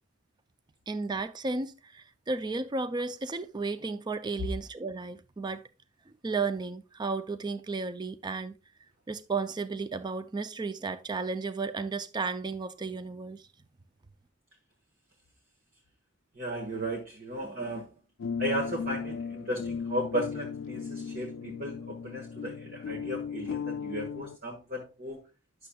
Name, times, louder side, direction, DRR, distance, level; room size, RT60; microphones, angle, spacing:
voice 1, 0.9-5.6 6.1-8.6 9.1-13.4, right 4 dB, 20° right, 0.4 m, -33 dB
voice 2, 16.3-17.9 18.4-25.3, equal, 50° right, 1.3 m, -35 dB
sound 1, 18.2-24.4, left 6 dB, 80° left, 0.3 m, -36 dB
10.0 x 6.6 x 2.2 m
head